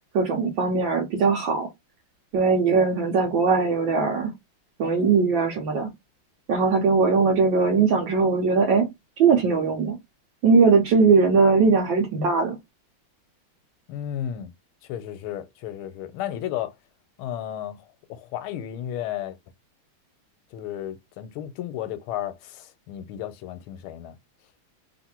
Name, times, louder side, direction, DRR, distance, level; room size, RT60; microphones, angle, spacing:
voice 1, 0.1-1.7 2.3-4.3 4.8-5.9 6.5-8.9 9.2-10.0 10.4-12.6, right 4 dB, 70° right, 1.5 m, -20 dB
voice 2, 13.9-14.5 14.9-16.7 17.2-19.4 20.5-24.2, left 11 dB, 85° left, 1.5 m, -33 dB
3.6 x 2.5 x 4.2 m
omnidirectional pair, 2.3 m